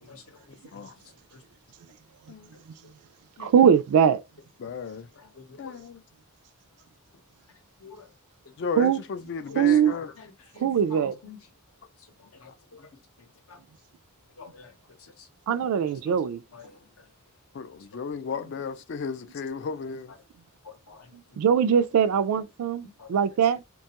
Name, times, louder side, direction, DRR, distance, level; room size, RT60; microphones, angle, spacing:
voice 1, 0.0-0.8 1.3-1.4 3.4-3.5 5.2-5.8 7.8-8.1 9.5-11.4 12.2-12.9 13.2-13.6 14.4-14.7 15.0-16.2 16.5-17.1 17.9-18.4 20.6-21.4 22.8-23.1, left 4 dB, 70° left, 0.7 m, -48 dB
voice 2, 3.4-4.2 8.8-9.0 9.6-9.9 10.6-11.1 15.5-16.4 21.4-23.6, right 8 dB, 80° right, 0.3 m, -21 dB
voice 3, 4.6-5.1 5.6-6.0 8.6-10.1 17.5-20.1, left 5 dB, 50° left, 0.3 m, -34 dB
2.9 x 2.3 x 2.8 m
head